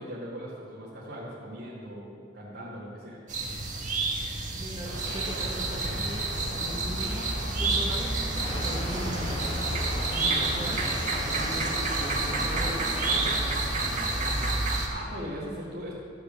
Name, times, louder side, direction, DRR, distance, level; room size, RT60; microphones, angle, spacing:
voice 1, 0.0-3.2 14.9-15.9, equal, 60° right, -8 dB, 2.1 m, -39 dB
sound 1, 3.3-14.9, right 3 dB, 45° right, 1.6 m, -30 dB
voice 2, 4.5-8.2 8.5-9.5 10.1-10.9 11.3-14.6, equal, 25° right, -1 dB, 1.3 m, -39 dB
sound 2, 4.8-14.7, equal, 80° right, 2.1 m, -34 dB
sound 3, 8.3-13.3, equal, 30° left, 2.1 m, -37 dB
13.0 x 6.8 x 7.4 m, 2.3 s
head